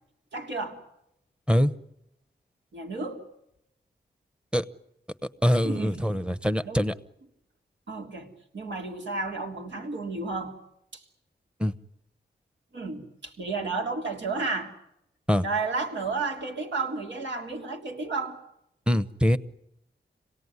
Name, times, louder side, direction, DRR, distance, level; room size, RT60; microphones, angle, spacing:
voice 1, 0.3-0.8 2.7-3.2 5.6-6.2 6.6-6.9 7.9-10.6 10.9-11.0 12.7-14.7 15.4-18.4, right 3 dB, 90° right, 0 dB, 3.3 m, -32 dB
voice 2, 5.4-6.9 11.6-11.7 15.3-15.4 18.9-19.4, equal, 5° right, 13 dB, 0.9 m, -23 dB
26.5 x 18.0 x 9.6 m, 0.83 s
wide cardioid pair, 105°, 18 cm